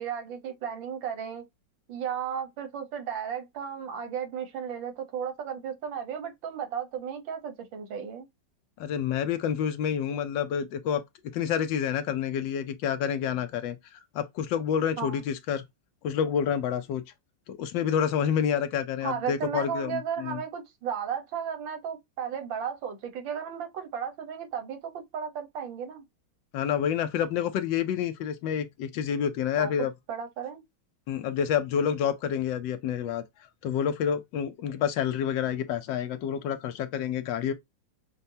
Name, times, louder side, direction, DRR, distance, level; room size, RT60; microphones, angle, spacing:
voice 1, 0.0-1.5 1.9-8.3 15.0-15.2 19.0-26.0 29.6-29.7 30.1-30.6, right 7 dB, 85° right, 1.8 m, -34 dB
voice 2, 8.8-11.0 11.3-13.8 14.1-15.6 16.0-17.0 17.5-20.4 26.5-29.9 31.1-33.2 33.6-37.5, left 8 dB, 80° left, 1.4 m, -28 dB
6.5 x 2.3 x 2.7 m
omnidirectional pair, 2.0 m